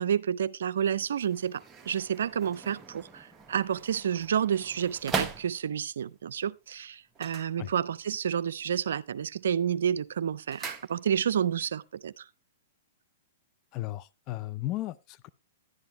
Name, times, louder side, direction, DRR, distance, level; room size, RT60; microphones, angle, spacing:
voice 1, 0.0-12.2, right 8 dB, 70° right, 0.4 m, -30 dB
sound 1, 1.0-6.0 7.1-8.2 8.5-9.0 9.4-11.4 11.7-11.8, right 4 dB, 15° right, 1.0 m, -40 dB
voice 2, 13.7-15.3, left 16 dB, 40° left, 0.4 m, -35 dB
11.0 x 10.5 x 2.9 m
hypercardioid pair, 115°, 0 cm